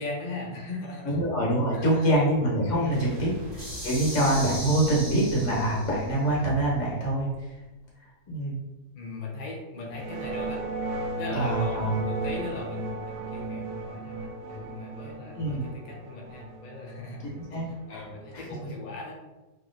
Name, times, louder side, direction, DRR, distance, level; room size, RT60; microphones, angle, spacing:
voice 1, 0.0-1.2 1.7-2.1 2.7-3.2 8.9-10.7 11.2-17.6 17.9-19.3, left 3 dB, 70° left, -2 dB, 0.4 m, -38 dB
voice 2, 1.0-3.3 3.8-7.3 8.3-8.6 11.3-12.0 15.3-15.6 17.2-18.0 18.3-18.4, right 1 dB, 50° left, -3 dB, 1.4 m, -25 dB
Boom, 2.9-7.8, right 1 dB, 55° right, 1.1 m, -43 dB
sound 1, 3.5-6.1, left 1 dB, 20° left, 1.3 m, -37 dB
sound 2, 9.9-18.6, right 2 dB, 85° right, 1.2 m, -35 dB
3.1 x 2.9 x 3.8 m, 1.1 s
omnidirectional pair, 1.7 m